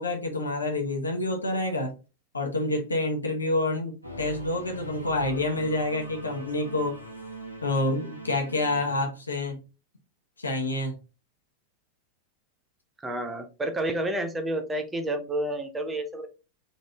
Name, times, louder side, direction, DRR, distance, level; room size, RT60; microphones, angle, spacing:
voice 1, 0.0-1.9 2.3-7.0 7.6-9.6 10.4-10.9, left 2 dB, 75° left, 1.1 m, -28 dB
Singing / Musical instrument, 4.0-9.0, right 1 dB, 90° right, 1.1 m, -41 dB
voice 2, 13.0-16.3, right 1 dB, 10° right, 0.7 m, -30 dB
4.0 x 3.2 x 3.5 m
figure-of-eight pair, 90°, 0 cm